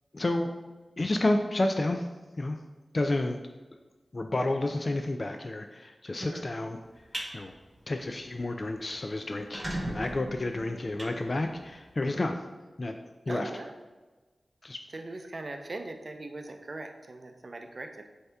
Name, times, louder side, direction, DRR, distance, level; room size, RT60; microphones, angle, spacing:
voice 1, 0.1-0.5 1.0-2.1 2.4-2.6 2.9-3.4 4.1-6.8 7.3-7.5 7.9-12.4 12.8-13.0 13.3-13.5 14.6-14.8, left 2 dB, 50° left, 5 dB, 0.3 m, -30 dB
sound 1, 6.8-7.3 7.8-8.0 8.4-8.5 8.7-8.8 9.3-11.9, right 1 dB, 25° right, 1.2 m, -37 dB
voice 2, 13.3-13.7 14.9-18.1, right 2 dB, 55° right, 5 dB, 0.5 m, -40 dB
7.7 x 2.8 x 2.3 m, 1.2 s
cardioid pair, 40°, 0 cm